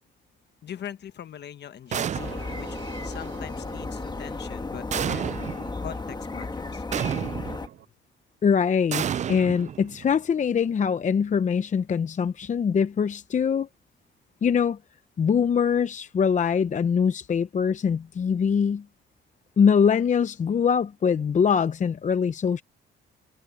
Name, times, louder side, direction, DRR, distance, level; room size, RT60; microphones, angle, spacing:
voice 1, 0.6-2.8 3.0-5.3 5.8-6.8, left 9 dB, 60° left, 1.4 m, -41 dB
sound 1, 1.9-2.7 4.9-5.7 6.9-7.7 8.9-10.1, right 9 dB, 35° right, 0.4 m, -30 dB
sound 2, 1.9-7.9, right 12 dB, 75° right, 3.8 m, -49 dB
sound 3, 2.1-7.7, left 3 dB, 20° left, 1.6 m, -34 dB
voice 2, 8.4-13.7 14.4-14.8 15.2-18.8 19.6-22.6, left 6 dB, 40° left, 0.7 m, -23 dB
cardioid pair, 90°, 20 cm